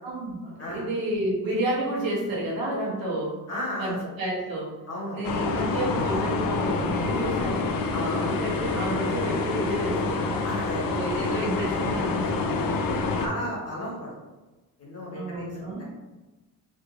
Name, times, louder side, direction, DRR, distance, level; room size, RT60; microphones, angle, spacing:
voice 1, 0.0-3.4 3.8-4.8 5.1-10.5 10.9-12.8 15.1-15.8, right 1 dB, 80° right, -4 dB, 1.1 m, -31 dB
voice 2, 3.5-3.9 4.9-5.2 7.9-8.1 10.4-11.0 13.2-14.1 14.8-15.8, left 1 dB, 45° left, -4 dB, 1.2 m, -34 dB
sound 1, 5.2-13.3, left 3 dB, 75° left, 0.5 m, -27 dB
3.4 x 2.8 x 2.4 m, 1.1 s
wide cardioid pair, 125°, 35 cm